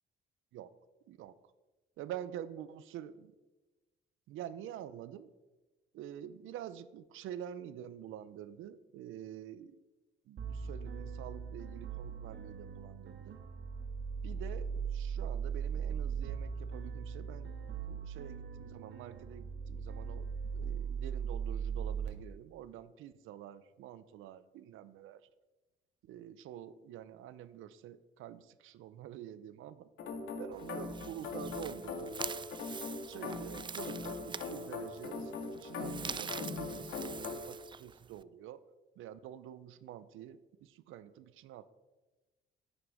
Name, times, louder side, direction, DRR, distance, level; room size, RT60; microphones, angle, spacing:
voice 1, 2.0-3.3 4.3-5.3 5.9-9.8 10.3-13.4 14.2-17.5 17.8-20.3 20.5-25.2 26.0-29.7 30.4-32.2 33.1-38.6 39.0-41.7, right 10 dB, 85° right, 15 dB, 0.6 m, -47 dB
sound 1, 10.4-22.1, right 6 dB, 60° right, 1.7 m, -39 dB
sound 2, 30.0-37.4, left 4 dB, 80° left, 1.7 m, -41 dB
sound 3, 30.5-38.2, right 6 dB, 25° right, 0.3 m, -45 dB
9.4 x 9.0 x 4.9 m, 1.2 s
cardioid pair, 90°, 20 cm